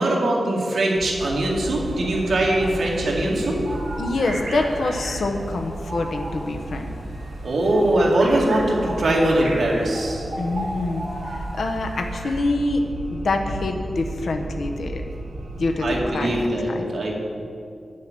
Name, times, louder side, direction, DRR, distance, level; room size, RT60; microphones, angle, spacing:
voice 1, 0.0-3.6 7.4-10.3 15.8-17.1, right 1 dB, 60° right, -2 dB, 2.3 m, -21 dB
sound 1, 1.0-16.1, right 2 dB, 80° right, 1.4 m, -35 dB
sound 2, 1.2-12.4, right 1 dB, 35° right, 3.0 m, -37 dB
voice 2, 4.0-6.9 10.4-12.8 13.1-15.0 15.6-16.9, left 2 dB, 65° left, 4 dB, 0.8 m, -26 dB
9.7 x 7.5 x 7.5 m, 2.5 s
wide cardioid pair, 175°, 0 cm